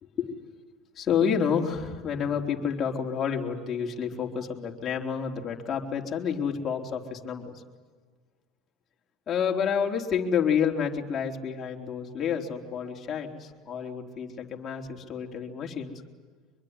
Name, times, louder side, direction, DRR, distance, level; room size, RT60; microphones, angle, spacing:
voice 1, 1.0-7.6 9.3-16.0, left 7 dB, 35° left, 1 dB, 4.0 m, -29 dB
24.5 x 23.0 x 9.8 m, 1.5 s
hypercardioid pair, 95°, 0 cm